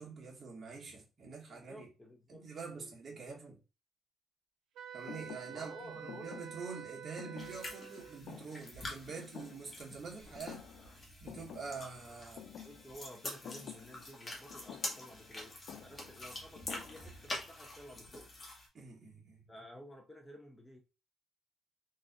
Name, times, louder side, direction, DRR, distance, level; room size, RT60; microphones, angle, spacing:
voice 1, 0.0-1.9 2.3-3.6 4.9-10.7 11.2-12.5 18.7-19.6, right 4 dB, 45° right, 1.8 m, -46 dB
voice 2, 1.5-2.4 2.7-3.4 5.5-6.4 12.6-18.3 19.5-20.8, equal, 15° left, 0.8 m, -53 dB
Wind instrument woodwind instrument, 4.8-8.2, right 9 dB, 85° right, 0.9 m, -48 dB
Thump thud, 5.1-10.1 10.4-11.0 11.3-17.4, left 9 dB, 75° left, 0.4 m, -52 dB
sound 1, 7.4-18.7, left 1 dB, 30° left, 1.8 m, -46 dB
3.9 x 3.8 x 2.5 m
cardioid pair, 90°, 0 cm